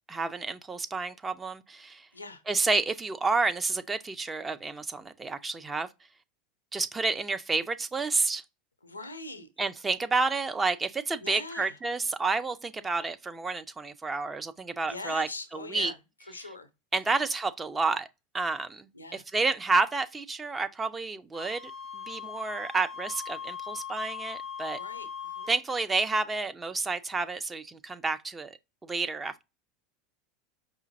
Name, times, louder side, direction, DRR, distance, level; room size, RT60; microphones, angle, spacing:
voice 1, 0.1-2.1 2.5-5.9 6.7-8.4 9.6-15.9 16.9-18.1 18.3-21.6 21.9-24.8 25.5-28.6 28.8-29.4, right 3 dB, 15° right, 0.4 m, -30 dB
voice 2, 2.1-2.4 8.8-9.5 11.2-11.8 14.8-16.7 17.1-17.2 18.9-19.2 24.7-25.1 25.3-25.5, left 2 dB, 90° left, 0.5 m, -42 dB
Wind instrument woodwind instrument, 21.3-25.6, left 7 dB, 75° right, 1.6 m, -40 dB
4.9 x 2.6 x 2.5 m
figure-of-eight pair, 80°, 0 cm